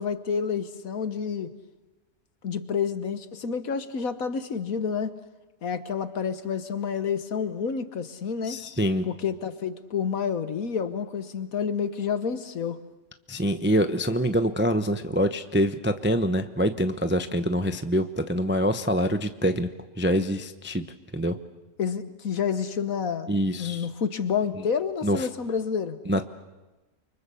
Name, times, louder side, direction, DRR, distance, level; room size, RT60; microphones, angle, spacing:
voice 1, 0.0-1.5 2.4-5.1 5.6-8.6 9.0-12.8 21.8-23.3 23.6-26.0, left 6 dB, 60° left, 11 dB, 1.6 m, -29 dB
voice 2, 8.4-9.1 13.3-19.7 20.0-20.9 21.1-21.4 23.3-23.9 25.0-25.2 26.1-26.2, equal, 10° right, 9 dB, 0.5 m, -25 dB
29.5 x 24.5 x 7.0 m, 1.1 s
omnidirectional pair, 1.7 m